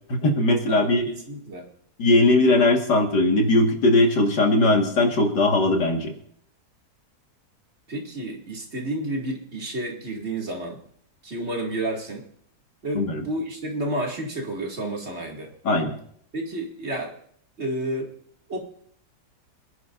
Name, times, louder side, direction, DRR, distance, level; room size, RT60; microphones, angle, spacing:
voice 1, 0.1-1.0 2.0-6.1 12.9-13.2 15.6-15.9, left 2 dB, 75° left, 2 dB, 2.4 m, -19 dB
voice 2, 0.7-1.7 7.9-10.8 11.2-12.3 12.8-15.5 16.3-17.1 17.6-18.1 18.5-18.6, right 1 dB, 40° right, 0 dB, 2.6 m, -30 dB
27.0 x 10.5 x 2.6 m, 0.64 s
omnidirectional pair, 1.8 m